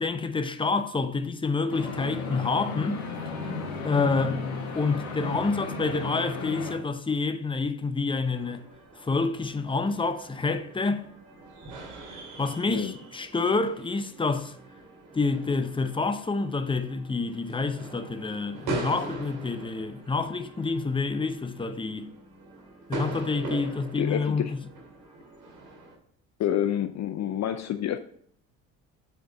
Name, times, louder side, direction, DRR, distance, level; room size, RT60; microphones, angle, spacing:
voice 1, 0.0-3.0 3.8-4.4 4.7-8.6 9.0-11.0 12.1-14.5 15.1-22.1 22.9-24.6, left 4 dB, 10° left, 0.8 m, -28 dB
sound 1, 1.7-6.7, left 3 dB, 80° left, 1.8 m, -34 dB
sound 2, 8.3-25.9, right 3 dB, 65° right, 2.3 m, -41 dB
voice 2, 24.0-24.5 26.4-28.0, left 10 dB, 45° left, 0.6 m, -28 dB
7.5 x 4.5 x 4.1 m
hypercardioid pair, 60°, 41 cm